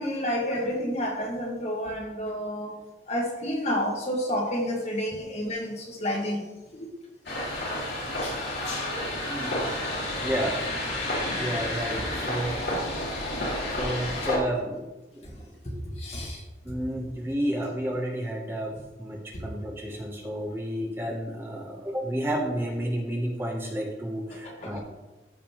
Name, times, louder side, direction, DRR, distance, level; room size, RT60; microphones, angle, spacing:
voice 1, 0.0-2.8 3.1-6.5 6.7-6.9 8.2-8.4 11.2-11.4 12.7-12.8 13.3-13.5 14.0-14.2 15.4-16.4 19.3-19.5 19.9-20.0 24.4-24.8, equal, 40° left, -1 dB, 1.6 m, -30 dB
sound 1, 7.3-14.4, left 1 dB, 75° left, 2.6 m, -30 dB
voice 2, 9.2-9.9 10.2-12.6 13.8-14.9 15.1-15.3 16.6-24.8, right 1 dB, 15° right, 0 dB, 0.8 m, -31 dB
13.5 x 5.3 x 3.0 m, 1.1 s
head